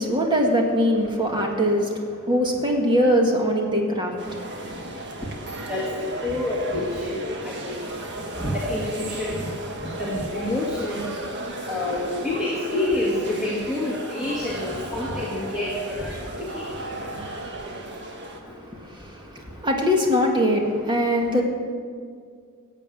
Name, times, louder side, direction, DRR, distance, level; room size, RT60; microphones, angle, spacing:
voice 1, 0.0-4.4 18.4-21.4, equal, 20° right, 1 dB, 1.9 m, -22 dB
sound 1, 4.2-18.4, right 1 dB, 55° right, 1.6 m, -35 dB
voice 2, 5.7-7.8 8.4-9.5 9.8-11.1 11.7-16.1 16.4-16.7, left 1 dB, ahead, -5 dB, 2.2 m, -28 dB
14.5 x 8.4 x 8.5 m, 2.1 s
head